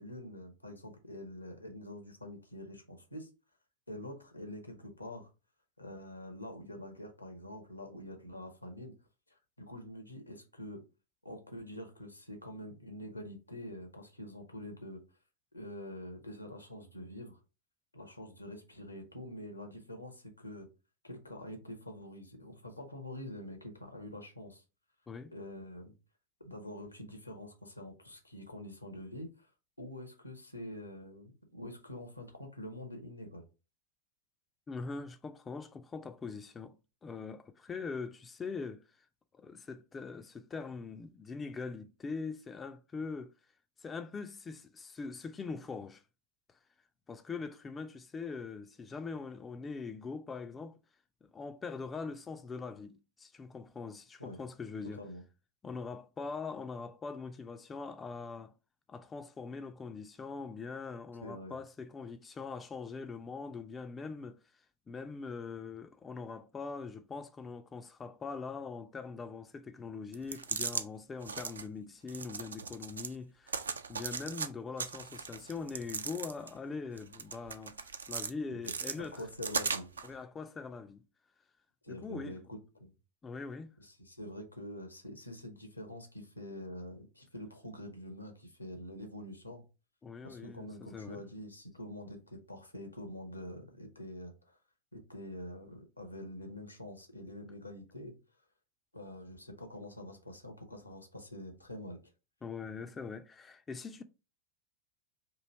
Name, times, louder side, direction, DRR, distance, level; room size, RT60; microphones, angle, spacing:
voice 1, 0.0-3.3 3.9-5.3 5.8-8.9 9.3-10.8 11.2-15.0 15.5-17.4 17.9-20.7 21.0-24.6 25.3-25.9 26.4-29.5 29.8-33.4 54.2-54.4 54.8-55.2 61.2-61.5 78.5-78.7 79.0-79.9 81.8-82.9 83.8-89.6 90.2-94.6 94.9-98.1 98.9-102.0, left 1 dB, 85° left, 0.9 m, -46 dB
voice 2, 34.7-36.8 37.0-38.8 39.3-43.3 43.8-46.0 47.1-50.8 51.2-55.0 55.6-58.5 58.9-64.4 64.9-79.2 80.0-81.0 81.9-82.4 83.2-83.7 90.0-91.2 102.4-104.0, left 4 dB, 20° left, 0.3 m, -42 dB
sound 1, 70.1-70.8 71.2-71.6 72.1-73.1 73.5-74.5 74.8-76.6 77.0-78.3 78.6-80.1, right 5 dB, 70° right, 0.3 m, -38 dB
3.0 x 2.7 x 4.2 m
figure-of-eight pair, 90°, 0 cm